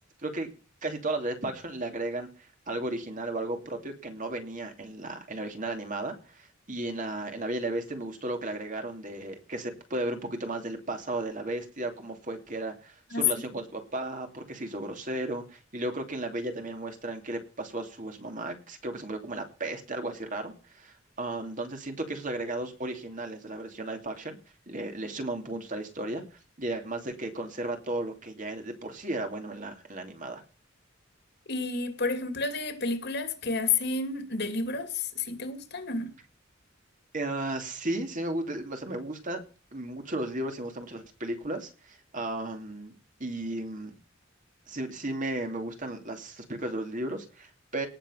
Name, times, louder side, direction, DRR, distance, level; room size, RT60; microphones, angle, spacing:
voice 1, 0.2-0.5 0.8-2.3 2.7-24.4 24.7-26.2 26.6-30.4 37.1-39.4 39.7-43.9 44.7-47.9, right 2 dB, 40° right, 2.7 m, -34 dB
voice 2, 31.5-36.1, left 4 dB, 55° left, 2.6 m, -30 dB
18.5 x 7.1 x 5.6 m
head